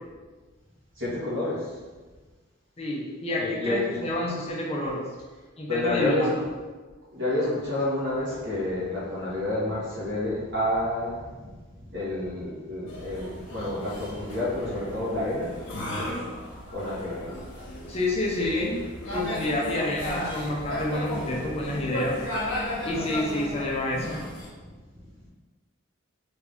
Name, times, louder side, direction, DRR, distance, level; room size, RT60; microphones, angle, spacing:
voice 1, 1.0-1.7 3.4-4.0 5.7-6.4 7.1-11.5 11.9-15.5 16.7-17.2, left 1 dB, 60° right, -8 dB, 1.5 m, -29 dB
voice 2, 2.8-5.1 5.6-6.3 17.9-18.9 19.1-22.2 22.8-24.2, left 1 dB, 30° left, -3 dB, 0.6 m, -29 dB
sound 1, 12.9-24.5, left 1 dB, 65° left, 1.0 m, -35 dB
3.4 x 2.6 x 3.5 m, 1.3 s
head